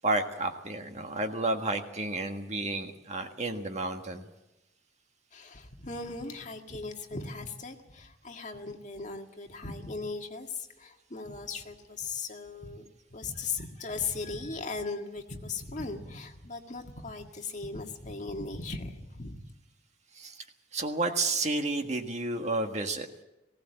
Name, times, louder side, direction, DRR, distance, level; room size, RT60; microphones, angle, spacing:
voice 1, 0.0-4.3 20.1-20.4 20.7-23.1, right 2 dB, 40° right, 5 dB, 1.7 m, -31 dB
voice 2, 5.3-19.5, left 4 dB, 40° left, 3 dB, 1.8 m, -38 dB
19.5 x 17.0 x 7.9 m, 0.97 s
head